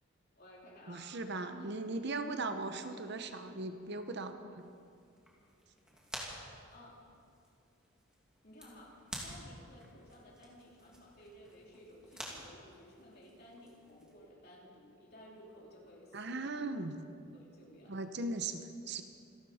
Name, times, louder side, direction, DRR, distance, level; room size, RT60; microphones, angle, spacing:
voice 1, 0.4-1.5 6.7-7.2 8.4-16.5 17.3-18.0, left 1 dB, 45° left, -3 dB, 3.4 m, -56 dB
voice 2, 0.9-4.6 16.1-17.0 17.9-19.0, right 3 dB, 50° right, 8 dB, 0.8 m, -38 dB
sound 1, 4.6-14.2, equal, 5° right, 2.5 m, -51 dB
27.0 x 12.0 x 4.3 m, 2.4 s
head